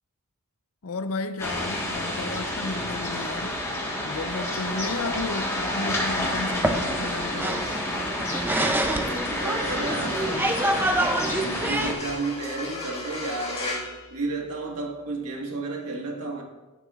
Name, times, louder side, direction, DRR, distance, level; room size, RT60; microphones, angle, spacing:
voice 1, 0.8-3.6 4.0-7.7, left 3 dB, 70° left, 0.6 m, -33 dB
sound 1, 1.4-11.9, left 1 dB, 10° left, 1.4 m, -30 dB
sound 2, 4.8-12.1, right 1 dB, 10° right, 0.4 m, -28 dB
sound 3, 7.3-14.8, left 2 dB, 30° left, 1.7 m, -38 dB
voice 2, 9.4-10.5 11.4-16.4, right 3 dB, 85° right, 1.5 m, -32 dB
14.5 x 7.0 x 2.4 m
head